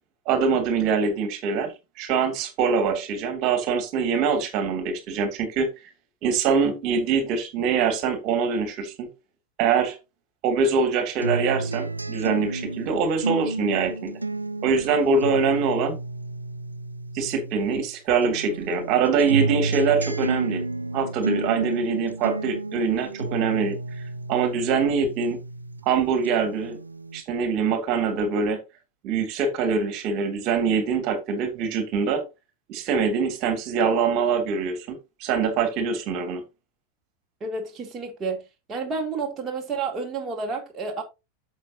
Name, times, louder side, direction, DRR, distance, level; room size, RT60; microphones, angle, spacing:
voice 1, 0.3-5.7 6.2-9.1 9.6-10.0 10.4-14.1 14.6-16.0 17.1-20.7 20.9-24.0 24.3-25.4 25.8-26.8 27.1-28.6 29.0-32.2 32.7-36.4, right 5 dB, 40° right, 2.8 m, -24 dB
sound 1, 11.2-17.9 18.2-25.9 26.2-27.2, right 3 dB, 80° right, 0.6 m, -31 dB
voice 2, 37.4-38.4 38.7-41.0, right 4 dB, 20° right, 2.7 m, -30 dB
11.5 x 7.3 x 2.9 m
figure-of-eight pair, 90°, 0 cm